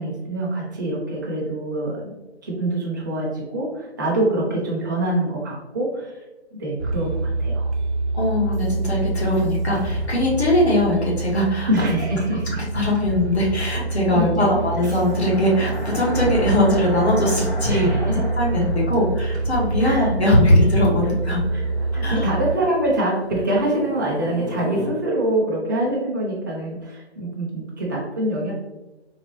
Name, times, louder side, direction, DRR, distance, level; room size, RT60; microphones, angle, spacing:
voice 1, 0.0-2.1 2.4-6.2 6.5-7.7 11.7-12.6 14.1-14.4 14.9-15.0 17.7-18.3 19.8-20.1 21.5-28.5, right 1 dB, 20° right, -5 dB, 0.6 m, -25 dB
sound 1, 6.8-22.5, right 3 dB, 75° right, 0.7 m, -26 dB
voice 2, 8.1-11.7 12.6-17.9 18.4-21.4 21.9-22.3, left 1 dB, 70° left, -3 dB, 1.2 m, -20 dB
sound 2, 14.5-24.9, equal, 45° left, 1.1 m, -34 dB
4.0 x 2.2 x 2.9 m, 1.0 s
figure-of-eight pair, 155°, 34 cm